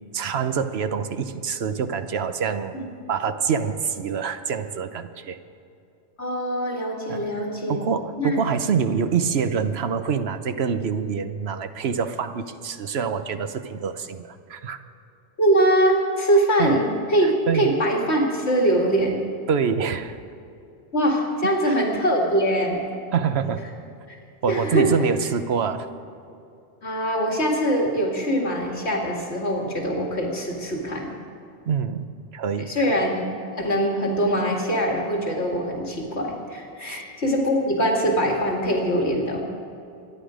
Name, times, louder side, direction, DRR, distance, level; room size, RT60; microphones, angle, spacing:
voice 1, 0.1-2.7 3.1-5.4 7.1-7.3 7.7-14.8 16.6-16.8 17.2-17.7 19.5-20.2 21.4-21.7 23.1-23.6 24.4-25.9 31.7-32.1 32.3-33.0 36.8-37.0, right 6 dB, 70° right, 9 dB, 1.1 m, -26 dB
voice 2, 6.2-7.8 8.2-8.4 15.4-19.2 20.9-22.9 24.5-24.9 26.8-31.1 32.7-33.3 33.6-39.4, right 1 dB, 70° left, -1 dB, 2.5 m, -23 dB
24.5 x 10.0 x 5.0 m, 2.7 s
omnidirectional pair, 1.1 m